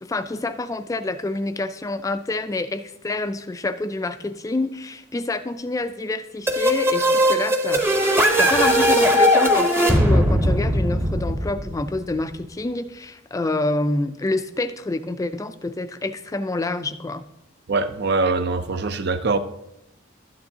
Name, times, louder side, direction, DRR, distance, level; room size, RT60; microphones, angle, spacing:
voice 1, 0.0-17.2, left 2 dB, 15° left, 0.3 m, -27 dB
sound 1, 6.5-12.1, equal, 10° right, 0.8 m, -19 dB
voice 2, 17.7-19.4, right 3 dB, 55° right, 0.6 m, -23 dB
12.0 x 9.5 x 2.8 m
head